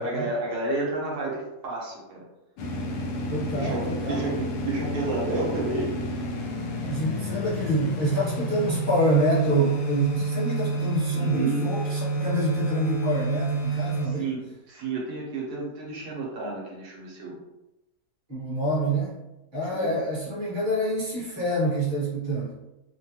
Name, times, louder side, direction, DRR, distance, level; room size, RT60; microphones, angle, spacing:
voice 1, 0.0-2.2 3.4-5.9 11.2-11.6 14.1-17.4 19.6-19.9, right 3 dB, 75° right, -3 dB, 1.3 m, -31 dB
sound 1, 2.6-14.1, right 2 dB, 80° left, 1.1 m, -29 dB
voice 2, 3.3-4.2 6.8-14.3 18.3-19.2 19.5-22.6, right 1 dB, 20° right, -8 dB, 1.2 m, -27 dB
3.3 x 2.2 x 2.8 m, 0.97 s
omnidirectional pair, 1.7 m